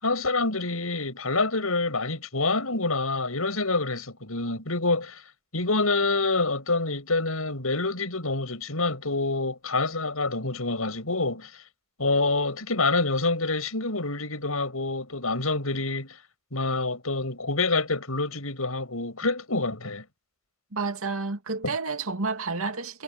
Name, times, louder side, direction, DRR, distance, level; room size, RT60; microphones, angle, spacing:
voice 1, 0.0-5.2 5.5-11.5 12.0-16.2 16.5-20.0 21.6-21.7, left 3 dB, 90° left, 6.8 m, -27 dB
voice 2, 20.7-23.0, right 4 dB, 85° right, 2.5 m, -30 dB
head